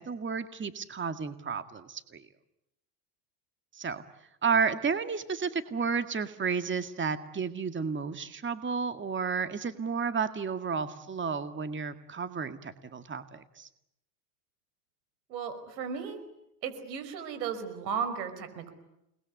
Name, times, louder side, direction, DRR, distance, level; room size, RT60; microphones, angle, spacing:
voice 1, 0.0-2.2 3.7-4.0 4.4-13.7, right 5 dB, 25° right, 9 dB, 2.0 m, -32 dB
voice 2, 15.3-16.2 16.6-18.7, right 6 dB, 90° right, 10 dB, 5.3 m, -35 dB
29.5 x 21.0 x 9.6 m, 0.83 s
hypercardioid pair, 85°, 50 cm